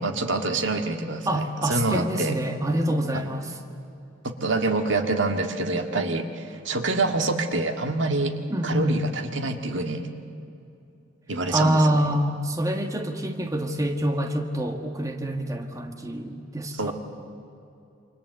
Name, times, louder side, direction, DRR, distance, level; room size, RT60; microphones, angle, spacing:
voice 1, 0.0-2.4 4.4-8.3 8.6-10.1 11.3-12.0 16.8-16.9, right 2 dB, 65° right, 5 dB, 1.8 m, -26 dB
voice 2, 1.3-3.5 8.5-9.0 11.5-16.9, right 1 dB, 15° right, 4 dB, 1.4 m, -26 dB
28.0 x 25.5 x 8.1 m, 2.7 s
head